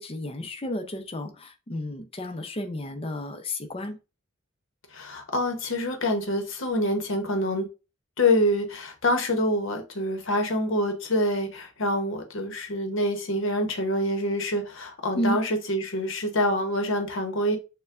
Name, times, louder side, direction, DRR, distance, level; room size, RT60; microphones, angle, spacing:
voice 1, 0.0-4.0 15.1-15.4, left 1 dB, 25° left, 0.5 m, -32 dB
voice 2, 4.9-7.7 8.2-17.6, left 1 dB, 60° left, 0.9 m, -26 dB
6.6 x 2.2 x 2.4 m
head